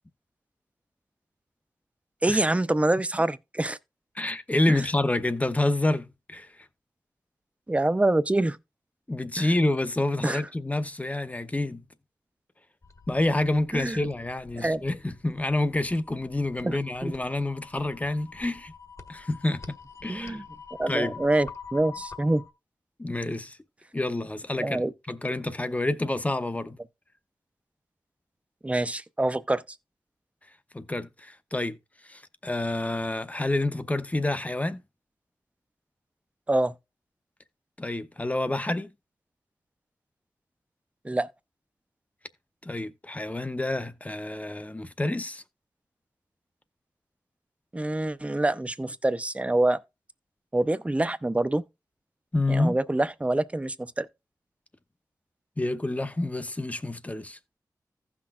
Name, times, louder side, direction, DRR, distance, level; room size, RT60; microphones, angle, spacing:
voice 1, 2.2-3.8 4.7-4.8 7.7-8.6 9.4-9.5 10.2-10.4 13.7-14.0 14.6-14.8 16.6-17.1 20.1-20.4 20.8-22.4 24.6-24.9 28.6-29.6 36.5-36.7 41.0-41.3 47.7-49.8 50.5-51.6 52.5-54.1, right 2 dB, 15° right, 0.6 m, -26 dB
voice 2, 4.1-6.7 9.1-11.8 13.1-18.7 19.1-19.8 20.0-20.4 20.9-21.2 23.0-23.6 23.9-26.8 30.7-31.8 32.0-34.8 37.8-38.9 42.6-45.4 52.3-52.8 55.6-57.4, left 2 dB, 20° left, 0.7 m, -28 dB
sound 1, 12.8-22.5, left 5 dB, 45° left, 1.0 m, -46 dB
15.5 x 6.0 x 2.4 m
wide cardioid pair, 85°, 7 cm